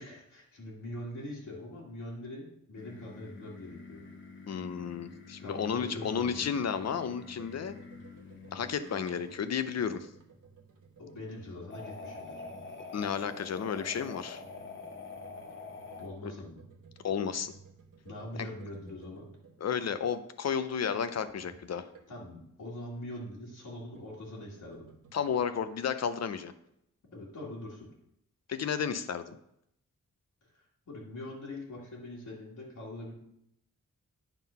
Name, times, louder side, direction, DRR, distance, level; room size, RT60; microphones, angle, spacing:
voice 1, 0.0-4.0 5.4-6.5 11.0-12.4 16.0-16.6 18.0-19.3 22.1-24.9 27.1-27.9 30.5-33.1, left 1 dB, 75° left, -5 dB, 2.0 m, -43 dB
sound 1, 2.8-9.5 11.7-16.1, left 4 dB, 40° left, 1.0 m, -47 dB
voice 2, 4.5-7.8 8.5-10.1 12.9-14.4 16.2-16.3 17.0-17.5 19.6-21.9 25.1-26.5 28.5-29.4, left 7 dB, 55° left, 11 dB, 0.6 m, -32 dB
sound 2, 6.0-22.4 23.5-25.4, right 5 dB, 90° right, 1.2 m, -58 dB
9.2 x 3.8 x 5.6 m, 0.77 s
wide cardioid pair, 150°, 31 cm